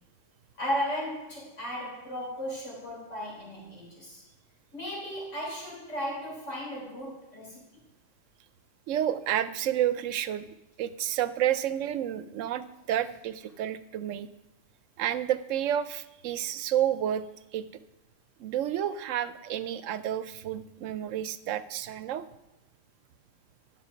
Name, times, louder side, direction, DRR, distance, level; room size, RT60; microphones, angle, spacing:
voice 1, 0.6-4.2 4.7-7.6, equal, 75° left, -4 dB, 4.0 m, -35 dB
voice 2, 8.9-10.5 10.8-14.3 15.0-17.2 17.5-17.6 18.4-22.3, right 11 dB, 85° right, 14 dB, 0.9 m, -30 dB
11.5 x 6.3 x 5.1 m, 0.93 s
omnidirectional pair, 1.3 m